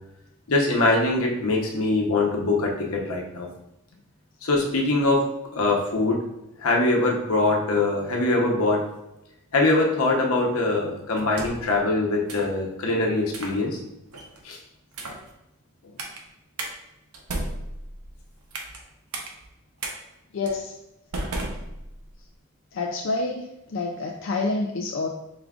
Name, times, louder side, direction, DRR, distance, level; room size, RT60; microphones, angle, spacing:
voice 1, 0.5-3.5 4.4-6.2 6.6-8.8 9.5-13.8 14.4-14.6, left 2 dB, 80° left, -1 dB, 0.9 m, -23 dB
sound 1, 11.1-11.7 12.3-12.6 13.3-13.6 14.1-14.4 14.9-15.3 16.0-16.2 16.6-16.7 17.1-18.8 19.1-19.3 19.8-19.9 20.5-20.6 21.1-22.2, right 2 dB, 85° right, 0.7 m, -34 dB
voice 2, 20.3-20.7 22.7-25.1, left 3 dB, 60° left, 1 dB, 0.3 m, -28 dB
4.9 x 3.5 x 2.4 m, 0.91 s
head